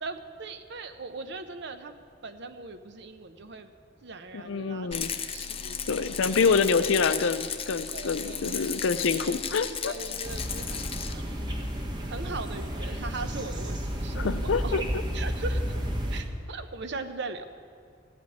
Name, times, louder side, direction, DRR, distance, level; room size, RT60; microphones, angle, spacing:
voice 1, 0.0-2.0 2.2-3.7 4.0-5.0 5.3-6.1 7.9-8.7 9.1-9.3 9.6-10.8 11.0-11.3 12.1-14.9 15.1-15.8 16.1-17.4, right 3 dB, 60° right, 9 dB, 0.7 m, -39 dB
voice 2, 4.3-5.1 5.9-9.9 14.1-15.0, left 5 dB, 85° left, 12 dB, 0.5 m, -26 dB
Rattle, 4.9-11.1, left 7 dB, 30° left, 0.5 m, -35 dB
sound 1, 10.2-16.2, equal, 20° right, 1.3 m, -32 dB
14.5 x 5.2 x 9.4 m, 2.2 s
head